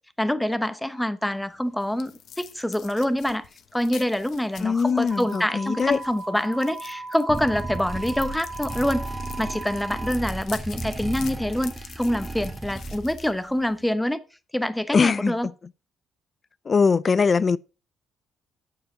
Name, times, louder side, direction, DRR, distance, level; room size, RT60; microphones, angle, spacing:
voice 1, 0.2-3.5 3.7-9.0 9.4-14.2 14.5-15.5, left 1 dB, 5° left, 1.0 m, -26 dB
sound 1, 1.3-13.9, left 8 dB, 70° left, 1.1 m, -46 dB
voice 2, 4.6-6.0 14.9-15.5 16.7-17.6, left 5 dB, 40° left, 0.5 m, -21 dB
sound 2, 5.1-10.1, right 2 dB, 40° right, 1.8 m, -37 dB
sound 3, 7.3-13.4, right 2 dB, 15° right, 1.7 m, -34 dB
8.9 x 6.9 x 5.1 m
cardioid pair, 90°, 0 cm